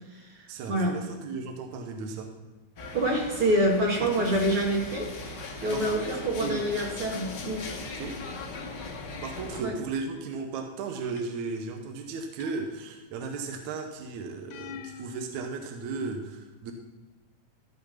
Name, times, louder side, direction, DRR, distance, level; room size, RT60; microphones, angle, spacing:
voice 1, 0.5-2.3 4.0-4.4 5.7-6.1 6.4-6.7 7.9-8.2 9.2-16.7, right 4 dB, 70° right, 4 dB, 2.2 m, -35 dB
sound 1, 2.8-9.6, left 3 dB, 65° left, 1.0 m, -39 dB
voice 2, 2.9-7.7 9.6-9.7, right 1 dB, 45° right, -1 dB, 2.5 m, -26 dB
sound 2, 11.2-11.6 12.4-13.3 14.5-15.3, left 9 dB, 85° left, 2.1 m, -43 dB
13.5 x 5.8 x 5.7 m, 1.2 s
omnidirectional pair, 3.6 m